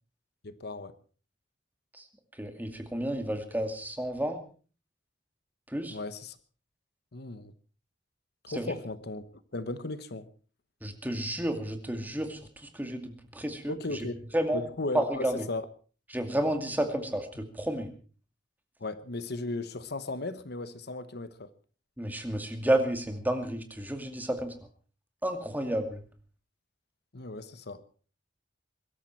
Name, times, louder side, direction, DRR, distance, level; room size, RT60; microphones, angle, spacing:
voice 1, 0.4-0.9 5.9-6.4 7.1-7.5 8.4-9.2 9.5-10.3 13.7-14.2 14.5-15.6 18.8-21.5 27.1-27.8, left 2 dB, 60° left, 13 dB, 1.1 m, -36 dB
voice 2, 2.4-4.4 5.7-6.0 8.5-8.7 10.8-14.1 14.3-14.6 14.9-15.4 16.1-17.9 22.0-24.5 25.2-26.0, right 1 dB, 10° right, 6 dB, 2.3 m, -31 dB
23.0 x 13.0 x 4.6 m, 0.39 s
head